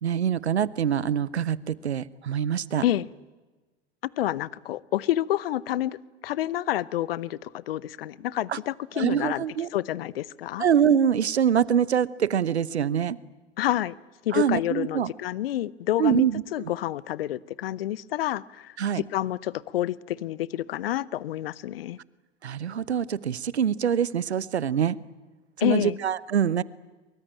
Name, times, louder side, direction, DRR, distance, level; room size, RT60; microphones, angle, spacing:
voice 1, 0.0-2.9 8.5-8.6 8.9-9.7 10.6-13.2 14.3-15.1 16.0-16.7 18.8-19.0 22.4-25.0 25.6-26.6, right 8 dB, 75° right, 21 dB, 0.9 m, -24 dB
voice 2, 4.2-6.0 6.2-9.4 9.7-10.6 13.6-13.9 14.2-22.0 25.6-26.0, left 13 dB, 60° left, 22 dB, 0.8 m, -28 dB
23.5 x 23.0 x 8.9 m, 1.2 s
figure-of-eight pair, 90°, 33 cm